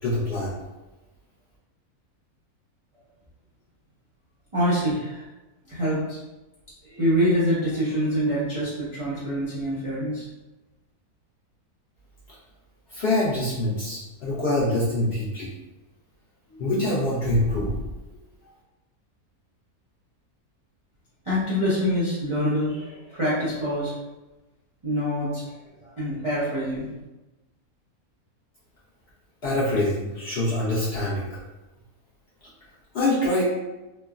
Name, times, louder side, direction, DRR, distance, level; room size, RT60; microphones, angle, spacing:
voice 1, 0.0-0.5 12.9-15.5 16.5-17.8 29.4-31.4 32.9-33.4, left 1 dB, 60° left, -8 dB, 0.7 m, -25 dB
voice 2, 4.5-5.2 5.7-6.2 6.8-10.3 21.2-24.0 24.8-26.9, equal, 40° right, -11 dB, 0.4 m, -25 dB
3.1 x 2.0 x 2.3 m, 1.1 s
omnidirectional pair, 1.6 m